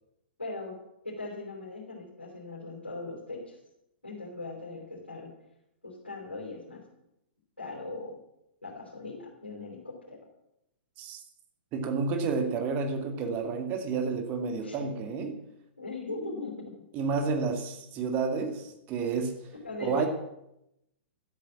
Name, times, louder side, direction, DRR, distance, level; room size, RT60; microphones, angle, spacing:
voice 1, 0.4-0.7 1.0-3.6 4.0-5.3 5.8-6.8 7.6-8.2 8.6-10.2 14.6-14.9 15.8-16.8 19.6-20.1, left 3 dB, 80° left, -4 dB, 4.1 m, -39 dB
voice 2, 11.7-15.4 16.9-19.4 19.8-20.1, right 4 dB, 30° right, 6 dB, 2.1 m, -30 dB
13.0 x 8.4 x 7.3 m, 0.83 s
figure-of-eight pair, 110°, 6 cm